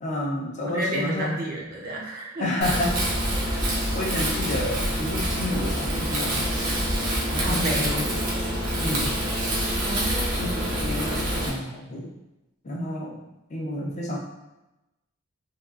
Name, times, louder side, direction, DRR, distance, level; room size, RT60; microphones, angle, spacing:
voice 1, 0.0-1.3 2.4-2.9 3.4-6.8 7.3-8.1 8.8-9.1 10.4-12.1 12.6-13.2 13.5-14.2, left 1 dB, 35° left, -2 dB, 0.5 m, -30 dB
voice 2, 0.6-2.5 7.4-8.0 9.8-10.4, right 1 dB, 40° right, -2 dB, 0.5 m, -31 dB
Wind, 2.6-11.5, right 1 dB, 85° right, 0.8 m, -26 dB
3.5 x 2.3 x 2.3 m, 0.96 s
head